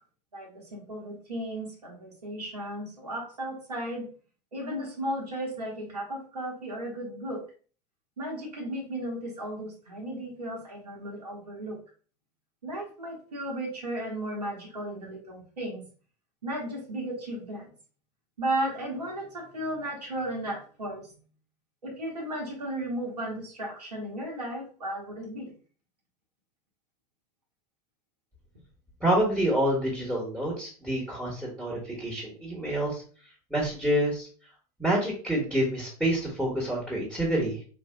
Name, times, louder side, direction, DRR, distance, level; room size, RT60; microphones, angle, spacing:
voice 1, 0.3-4.1 4.5-7.4 8.2-11.8 12.6-15.8 16.4-17.7 18.4-21.2 21.8-25.5, right 1 dB, 85° right, -2 dB, 1.1 m, -35 dB
voice 2, 29.0-33.0 33.5-34.3 34.8-37.6, right 1 dB, 5° right, -4 dB, 1.3 m, -27 dB
4.1 x 2.6 x 2.3 m, 0.41 s
hypercardioid pair, 80°, 20 cm